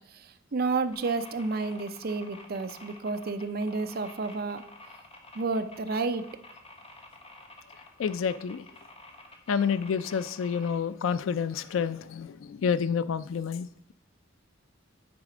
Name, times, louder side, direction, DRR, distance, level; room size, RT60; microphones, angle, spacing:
voice 1, 0.5-4.6 5.3-6.3, right 3 dB, 50° right, 9 dB, 0.5 m, -30 dB
sound 1, 0.9-10.8, left 2 dB, 30° left, 1.3 m, -49 dB
voice 2, 8.0-8.6 9.5-13.9, left 6 dB, 90° left, 14 dB, 0.4 m, -29 dB
9.6 x 4.1 x 4.9 m, 0.71 s
head